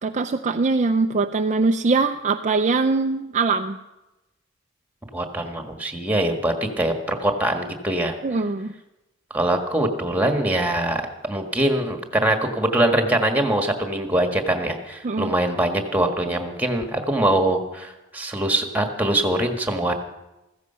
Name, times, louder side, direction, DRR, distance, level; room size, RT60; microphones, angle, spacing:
voice 1, 0.0-3.8 8.2-8.7 15.0-15.3, right 3 dB, 35° right, 5 dB, 0.5 m, -22 dB
voice 2, 5.1-8.1 9.3-11.0 11.3-19.9, right 1 dB, 10° right, 5 dB, 1.6 m, -23 dB
15.0 x 14.5 x 5.7 m, 0.99 s
head